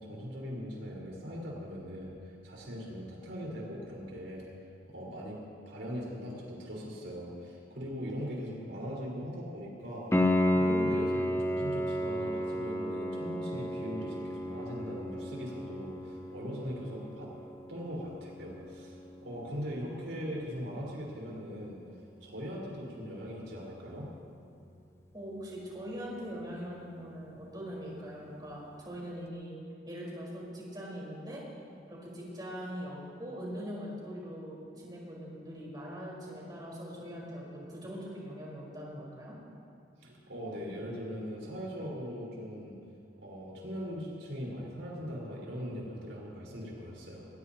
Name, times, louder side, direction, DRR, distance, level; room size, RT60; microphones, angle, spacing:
voice 1, 0.0-4.4 4.9-5.4 5.7-10.0 10.5-17.3 17.7-19.0 19.2-21.8 22.2-24.1 40.0-42.8 43.2-47.3, equal, 85° right, -4 dB, 4.7 m, -40 dB
Piano, 10.1-20.8 24.1-24.2, left 1 dB, 15° left, 0.7 m, -33 dB
voice 2, 25.1-29.6 29.8-31.4 31.9-39.4, equal, 20° right, -5 dB, 4.6 m, -42 dB
21.0 x 20.5 x 3.0 m, 2.4 s
head